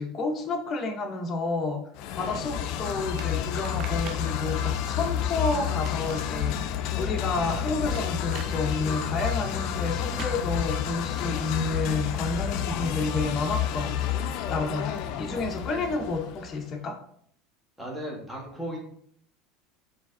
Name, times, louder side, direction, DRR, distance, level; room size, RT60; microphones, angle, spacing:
voice 1, 0.0-1.8 2.1-14.0 14.5-17.0, left 3 dB, 30° left, 3 dB, 0.8 m, -30 dB
sound 1, 1.9-16.6, left 9 dB, 65° left, 0.4 m, -30 dB
sound 2, 3.2-4.3 5.6-6.7 7.9-8.5 10.2-10.4, right 6 dB, 55° right, 0.5 m, -42 dB
voice 2, 17.8-18.8, equal, 10° right, -2 dB, 1.5 m, -35 dB
4.5 x 3.5 x 2.7 m, 0.64 s
supercardioid pair, 105°, 0 cm